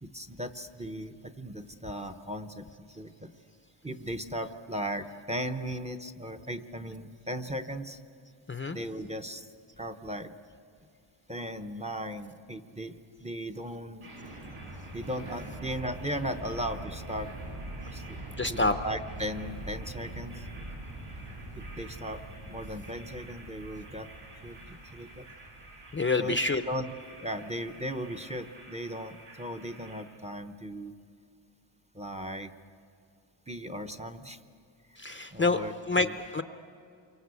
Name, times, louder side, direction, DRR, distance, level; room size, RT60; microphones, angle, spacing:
voice 1, 0.0-3.3 3.8-8.0 8.7-9.5 9.8-10.3 11.3-12.9 13.2-14.1 14.9-17.3 17.9-18.2 18.5-20.4 21.6-22.2 22.5-24.1 24.4-24.6 24.9-25.3 26.2-26.8 27.2-30.9 31.9-32.5 33.5-34.4 35.3-36.1, equal, 15° right, 9 dB, 0.8 m, -37 dB
voice 2, 8.5-8.8 18.4-18.8 25.9-26.6 35.0-35.6 35.9-36.4, left 3 dB, 25° left, 9 dB, 0.6 m, -27 dB
sound 1, 14.0-30.0, right 1 dB, 80° right, 7.6 m, -44 dB
28.0 x 24.0 x 8.2 m, 2.5 s
wide cardioid pair, 170°, 49 cm